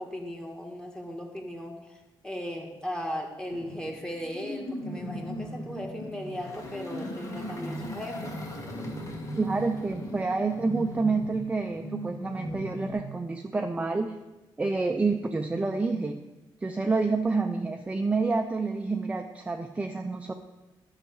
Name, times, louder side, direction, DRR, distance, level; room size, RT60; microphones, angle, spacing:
voice 1, 0.0-8.3, equal, 10° left, 2 dB, 1.7 m, -37 dB
sound 1, 3.5-12.9, equal, 60° left, 3.2 m, -38 dB
Engine, 6.1-11.4, left 1 dB, 35° left, 1.8 m, -45 dB
voice 2, 9.4-14.1 14.6-16.2 16.6-20.3, right 3 dB, 15° right, 5 dB, 0.5 m, -28 dB
11.0 x 5.8 x 7.1 m, 1.1 s
cardioid pair, 130°, 9 cm